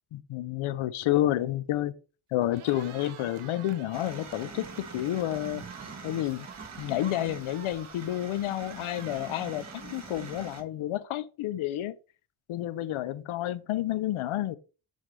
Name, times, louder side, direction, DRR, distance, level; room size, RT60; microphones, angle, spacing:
voice 1, 0.1-1.9 2.3-5.6 6.0-6.5 6.8-11.9 12.5-14.6, left 13 dB, 80° left, 0.6 m, -30 dB
Cheering, 2.4-10.7, right 10 dB, 85° right, 0.9 m, -50 dB
sound 1, 3.9-10.6, right 4 dB, 35° right, 1.6 m, -44 dB
7.3 x 4.1 x 3.3 m
cardioid pair, 60°, 48 cm